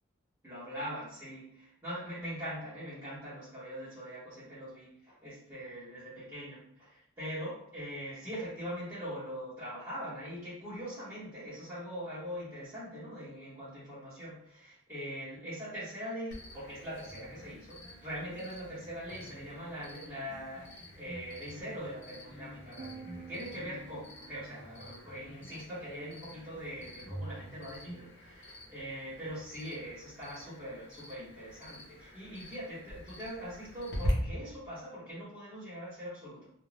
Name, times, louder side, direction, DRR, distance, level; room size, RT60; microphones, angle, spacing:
voice 1, 0.4-36.5, equal, 15° right, -14 dB, 0.9 m, -42 dB
Cricket, 16.3-34.1, left 1 dB, 55° left, 0.7 m, -46 dB
sound 1, 17.1-27.9, equal, 5° left, 0.4 m, -50 dB
sound 2, 22.8-25.2, right 6 dB, 85° right, 0.5 m, -51 dB
2.4 x 2.2 x 3.2 m, 0.68 s
head